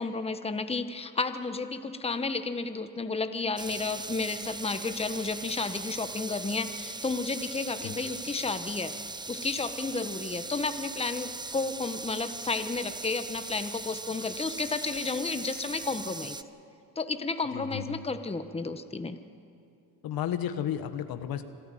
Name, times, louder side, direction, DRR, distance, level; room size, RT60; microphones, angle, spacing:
voice 1, 0.0-8.9 9.3-16.4 16.9-19.2, left 3 dB, 15° left, 9 dB, 1.2 m, -32 dB
sound 1, 3.6-16.4, right 3 dB, 10° right, 0.7 m, -39 dB
voice 2, 17.5-18.0 20.0-21.4, left 10 dB, 65° left, 9 dB, 1.4 m, -33 dB
26.5 x 13.0 x 9.1 m, 2.6 s
supercardioid pair, 75°, 38 cm